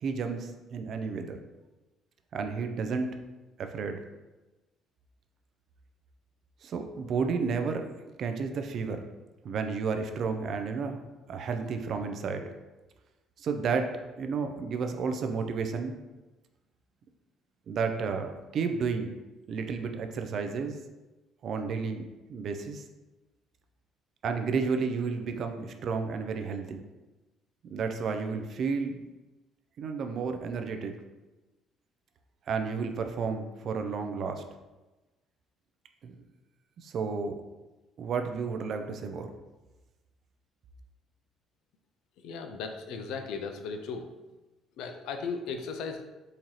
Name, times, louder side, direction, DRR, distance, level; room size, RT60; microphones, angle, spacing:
voice 1, 0.0-1.4 2.3-3.2 3.6-4.0 6.6-9.0 9.4-11.0 11.3-12.5 13.4-16.0 17.7-19.1 19.5-20.8 21.4-22.8 24.2-26.8 27.7-29.0 29.8-30.9 32.5-34.4 36.0-36.1 36.8-37.4 38.0-39.3, right 5 dB, 45° right, 6 dB, 0.3 m, -32 dB
voice 2, 42.2-44.1 44.8-46.0, left 5 dB, 75° left, 6 dB, 0.4 m, -36 dB
3.8 x 2.7 x 3.0 m, 1.1 s
cardioid pair, 165°, 0 cm